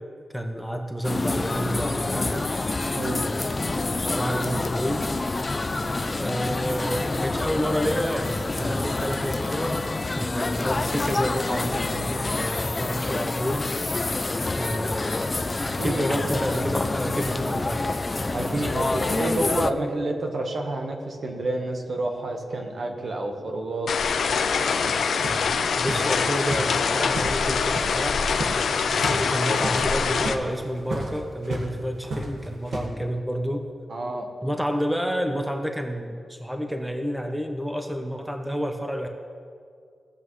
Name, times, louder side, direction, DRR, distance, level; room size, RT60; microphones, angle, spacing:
voice 1, 0.3-2.5 3.2-5.1 6.2-9.8 10.2-13.7 14.5-15.3 15.6-18.0 25.8-28.4 29.0-33.7 34.4-39.1, equal, 5° right, 4 dB, 0.7 m, -29 dB
sound 1, 1.0-19.7, left 2 dB, 30° left, 0.4 m, -27 dB
voice 2, 18.3-23.9 33.9-34.3, right 2 dB, 55° right, 3 dB, 1.2 m, -29 dB
sound 2, 23.9-30.4, left 5 dB, 85° left, 0.5 m, -24 dB
sound 3, 24.6-28.0 28.3-28.6 28.9-29.2 29.5-31.7 32.0-32.9, right 2 dB, 80° right, 1.6 m, -34 dB
16.5 x 8.0 x 3.2 m, 2.2 s
wide cardioid pair, 115°, 0 cm